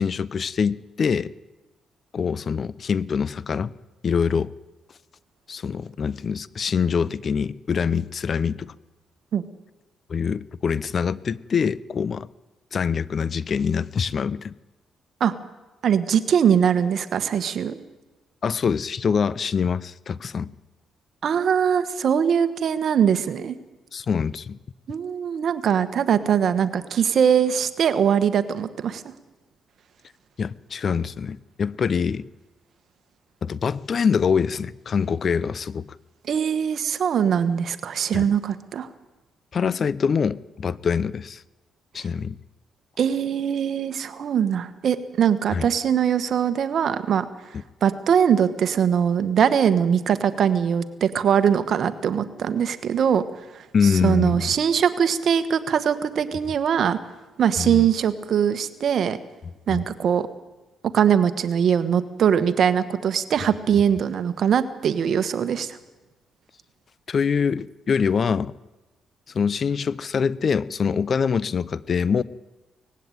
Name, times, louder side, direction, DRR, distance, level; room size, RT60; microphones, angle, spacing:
voice 1, 0.0-1.3 2.1-3.7 4.0-4.5 5.5-8.7 10.1-12.3 12.7-14.5 18.4-20.5 23.9-24.6 30.4-32.3 33.4-36.0 38.1-38.3 39.5-41.4 41.9-42.4 45.5-45.7 53.7-54.5 57.6-57.9 59.7-59.8 67.1-68.5 69.3-72.2, left 6 dB, 45° left, 20 dB, 0.6 m, -24 dB
voice 2, 15.8-17.8 21.2-23.6 24.9-29.0 36.3-38.9 43.0-47.3 47.8-53.2 53.5-53.6 54.0-57.0 57.4-59.2 59.7-60.2 60.9-65.8, right 8 dB, 60° right, 11 dB, 1.5 m, -21 dB
19.0 x 16.0 x 9.3 m, 1.1 s
cardioid pair, 90°, 0 cm